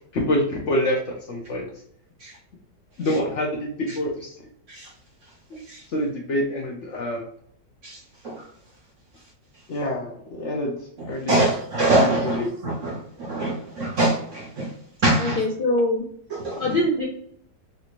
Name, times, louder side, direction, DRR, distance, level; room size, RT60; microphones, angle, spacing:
voice 1, 0.1-1.7 3.0-4.4 5.5-5.6 5.9-7.2 9.7-10.8 11.1-11.6 12.0-12.5, left 1 dB, 60° left, 0.8 m, -26 dB
voice 2, 7.8-8.4 11.0-14.7 15.0-15.4 16.3-16.6, right 2 dB, 65° right, 0.8 m, -24 dB
voice 3, 15.2-16.0 16.6-17.0, left 1 dB, 85° left, 0.4 m, -23 dB
3.3 x 2.6 x 2.9 m
omnidirectional pair, 1.8 m